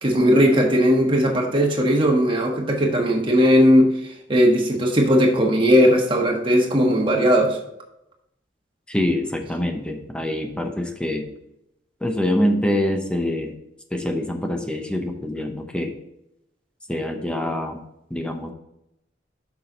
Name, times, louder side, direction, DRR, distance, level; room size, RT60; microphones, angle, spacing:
voice 1, 0.0-3.9 4.3-7.6, equal, 30° right, 0 dB, 1.4 m, -18 dB
voice 2, 8.9-11.3 12.0-13.5 13.9-16.0 16.9-17.8 18.1-18.5, left 1 dB, 5° left, 4 dB, 0.8 m, -25 dB
7.4 x 5.9 x 4.0 m, 0.83 s
head